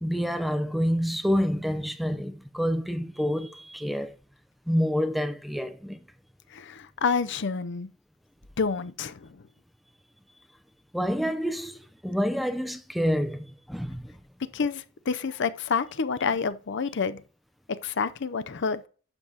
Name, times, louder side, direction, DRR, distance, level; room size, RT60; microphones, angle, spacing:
voice 1, 0.0-4.2 4.7-6.0 10.9-14.2, equal, ahead, 0.6 m, -28 dB
voice 2, 6.5-7.9 8.6-9.4 14.5-17.2 17.8-18.9, left 5 dB, 60° left, 0.6 m, -28 dB
11.5 x 7.6 x 2.8 m
head